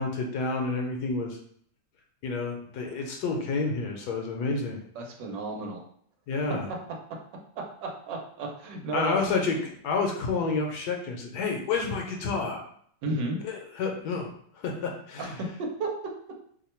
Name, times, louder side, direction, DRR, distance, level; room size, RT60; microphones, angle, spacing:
voice 1, 0.0-1.4 2.2-4.8 6.3-6.7 8.9-12.6 13.4-14.3 14.6-15.3, left 4 dB, 70° left, 1 dB, 1.1 m, -29 dB
voice 2, 4.9-5.8 7.6-9.2 13.0-13.4 15.2-16.1, right 2 dB, 85° right, 1 dB, 1.4 m, -33 dB
3.1 x 2.2 x 4.2 m, 0.64 s
omnidirectional pair, 1.9 m